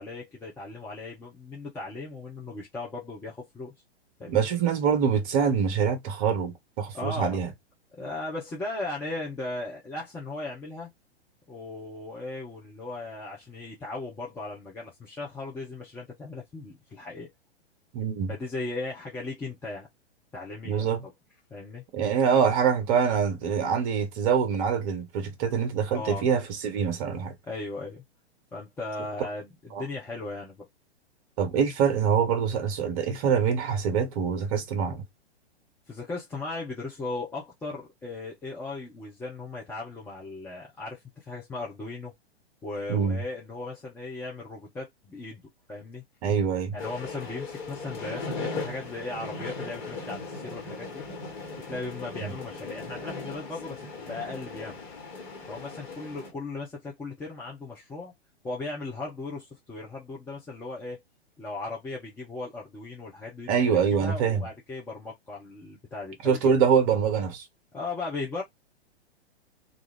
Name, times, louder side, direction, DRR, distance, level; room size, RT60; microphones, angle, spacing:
voice 1, 0.0-3.7 4.2-4.5 6.9-7.4 8.0-10.9 11.5-17.3 18.3-19.9 20.3-21.1 21.5-21.8 25.9-26.2 27.5-28.0 28.5-30.7 35.9-42.1 42.6-45.4 45.7-46.0 46.7-51.0 51.7-54.8 55.5-58.1 58.4-61.0 61.4-66.4 67.7-68.4, left 3 dB, 5° left, 0.5 m, -37 dB
voice 2, 4.3-7.5 17.9-18.3 20.6-21.0 21.9-27.4 29.7-29.8 31.4-35.0 42.9-43.2 46.2-46.8 52.2-52.3 63.5-64.5 66.2-67.4, right 7 dB, 35° right, 0.9 m, -25 dB
sound 1, 46.8-56.3, left 3 dB, 45° left, 1.3 m, -38 dB
2.5 x 2.3 x 3.3 m
figure-of-eight pair, 110°, 33 cm